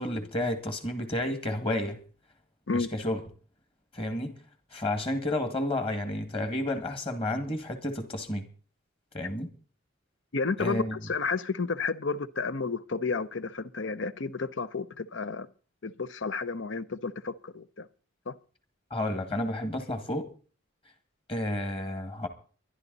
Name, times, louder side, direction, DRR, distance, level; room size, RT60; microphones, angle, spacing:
voice 1, 0.0-2.0 2.7-3.2 3.9-4.4 4.7-8.5 9.1-9.5 10.6-11.0 18.9-20.3 21.3-22.3, left 1 dB, 25° left, 2.0 m, -31 dB
voice 2, 10.3-15.5 15.8-17.9 18.3-18.4, left 4 dB, 65° left, 0.8 m, -31 dB
23.0 x 11.0 x 4.1 m
head